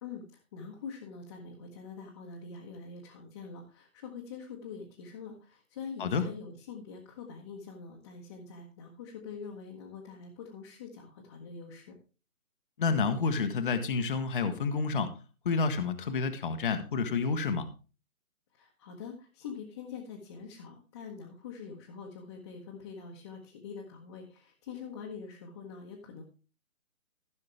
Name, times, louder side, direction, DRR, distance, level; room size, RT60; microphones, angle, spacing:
voice 1, 0.0-11.9 18.5-26.2, left 5 dB, 20° left, -3 dB, 1.1 m, -44 dB
voice 2, 12.8-15.1 15.4-17.7, left 4 dB, 35° left, 9 dB, 1.0 m, -29 dB
15.0 x 6.3 x 3.3 m, 0.33 s
figure-of-eight pair, 155°, 43 cm